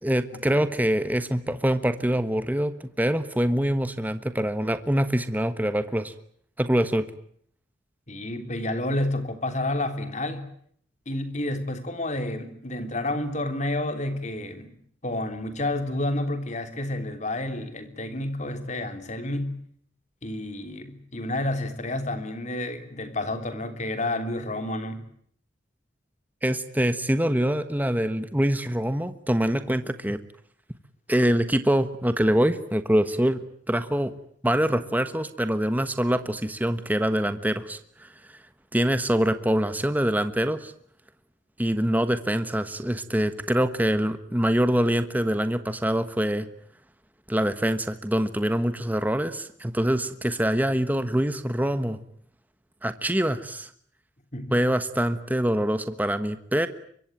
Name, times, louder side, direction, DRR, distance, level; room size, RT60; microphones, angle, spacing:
voice 1, 0.0-6.1 6.6-7.0 26.4-30.2 31.1-34.1 34.4-38.4 38.7-40.7 41.6-46.5 47.3-52.0 52.8-53.7 54.5-56.7, equal, 10° right, 10 dB, 1.2 m, -24 dB
voice 2, 8.1-10.4 11.0-14.7 15.0-19.6 20.2-25.0 54.3-54.5, left 1 dB, 40° left, 8 dB, 3.3 m, -30 dB
25.0 x 24.0 x 9.1 m, 0.64 s
head